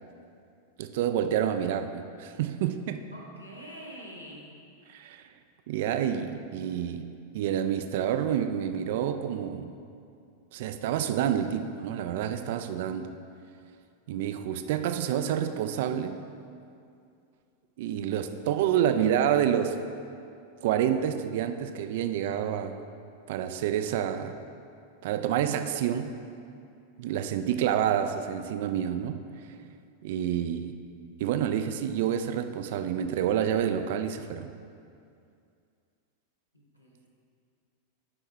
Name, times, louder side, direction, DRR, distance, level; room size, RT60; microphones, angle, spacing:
voice 1, 0.8-3.0 4.9-5.3 5.7-7.1 7.3-9.8 10.5-13.2 14.1-16.2 17.8-19.8 20.6-22.8 23.3-24.4 25.0-26.1 27.0-29.6 30.0-30.8 31.2-34.5, right 9 dB, 50° right, 9 dB, 0.4 m, -28 dB
voice 2, 3.1-4.5 36.5-37.1, equal, 90° left, -4 dB, 1.2 m, -45 dB
8.6 x 5.5 x 3.5 m, 2.4 s
figure-of-eight pair, 90°, 0 cm